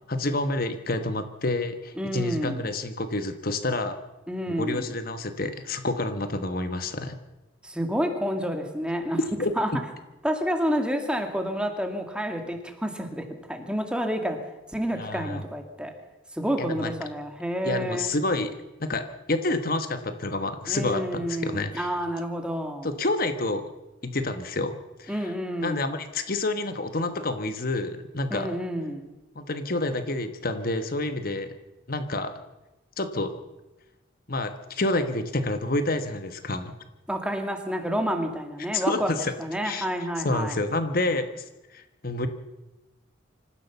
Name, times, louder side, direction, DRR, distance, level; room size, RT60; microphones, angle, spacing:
voice 1, 0.1-4.0 4.5-7.2 9.4-9.5 15.0-15.4 16.6-16.9 17.6-18.5 18.8-21.9 22.8-23.6 24.0-25.3 25.6-28.5 29.3-31.5 31.9-32.4 33.0-33.4 34.3-36.8 38.7-39.3 39.6-39.9 40.2-41.4 41.7-42.3, left 2 dB, 50° left, 8 dB, 1.2 m, -28 dB
voice 2, 2.0-2.7 4.3-4.9 7.6-9.2 9.6-9.7 10.2-14.4 14.7-15.9 16.3-18.1 20.7-22.9 25.1-25.9 28.3-29.1 37.1-39.1 39.4-40.6, equal, 5° right, 5 dB, 2.2 m, -29 dB
26.0 x 15.0 x 7.0 m, 1.0 s
head